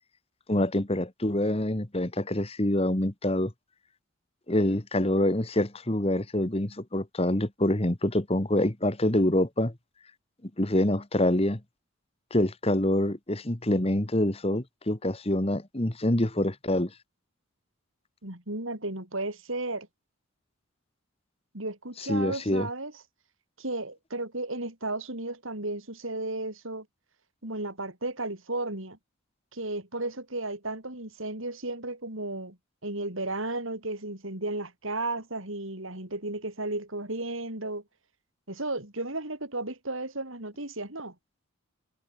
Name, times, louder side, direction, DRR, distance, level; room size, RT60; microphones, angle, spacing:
voice 1, 0.5-3.5 4.5-9.7 10.6-11.6 12.3-16.9 22.0-22.7, left 1 dB, 30° left, 1.6 m, -26 dB
voice 2, 18.2-19.9 21.5-22.9 23.6-26.9 27.4-29.0 29.5-32.6 32.8-37.8 38.5-41.1, right 2 dB, 70° right, 5.8 m, -34 dB
head